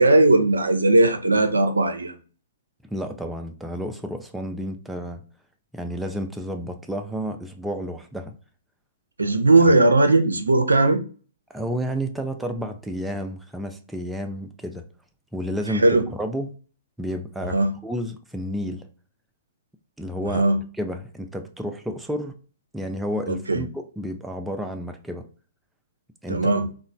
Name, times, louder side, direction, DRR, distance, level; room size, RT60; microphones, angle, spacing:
voice 1, 0.0-2.1 9.2-11.0 15.7-16.1 17.5-17.7 20.3-20.6 23.3-23.6 26.3-26.7, right 2 dB, 80° right, 0.4 m, -18 dB
voice 2, 2.9-5.2 5.7-8.3 9.7-9.8 11.5-14.8 15.3-16.5 17.0-18.9 20.0-22.3 22.7-25.2 26.2-26.6, equal, 5° right, 0.3 m, -31 dB
2.9 x 2.0 x 2.5 m
figure-of-eight pair, 115°, 0 cm